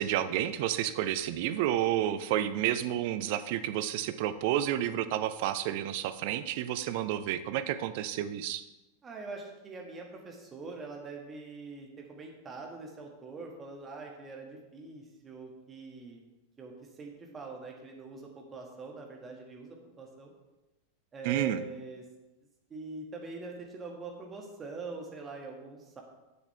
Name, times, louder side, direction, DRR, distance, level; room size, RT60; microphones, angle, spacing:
voice 1, 0.0-8.6 21.2-21.6, right 12 dB, 50° right, 12 dB, 0.6 m, -30 dB
voice 2, 9.0-16.2 16.6-20.3 21.1-22.0 22.7-26.0, right 3 dB, 20° right, 0 dB, 1.8 m, -43 dB
11.0 x 7.1 x 3.4 m, 1.0 s
figure-of-eight pair, 90°, 0 cm